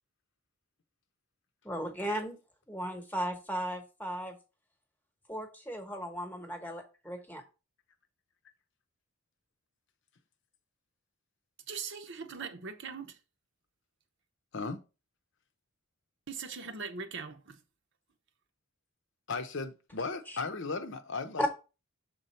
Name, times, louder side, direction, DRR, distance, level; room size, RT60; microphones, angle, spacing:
voice 1, 1.6-2.4 2.7-4.3 5.3-7.4 20.3-20.4 21.4-21.5, equal, 10° left, 1.1 m, -35 dB
voice 2, 11.7-13.2 16.3-17.6, right 5 dB, 55° right, 0.8 m, -40 dB
voice 3, 19.3-21.5, left 4 dB, 55° left, 0.7 m, -36 dB
6.7 x 3.9 x 4.2 m
head